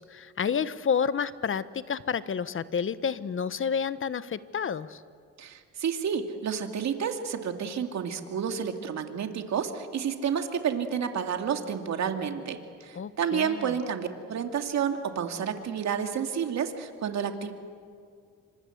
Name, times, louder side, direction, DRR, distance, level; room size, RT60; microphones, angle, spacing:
voice 1, 0.0-5.0 12.9-13.7, left 6 dB, 45° left, 14 dB, 1.2 m, -30 dB
voice 2, 5.4-17.5, right 7 dB, 65° right, 5 dB, 2.6 m, -30 dB
28.0 x 25.5 x 8.1 m, 2.2 s
cardioid pair, 90°, 30 cm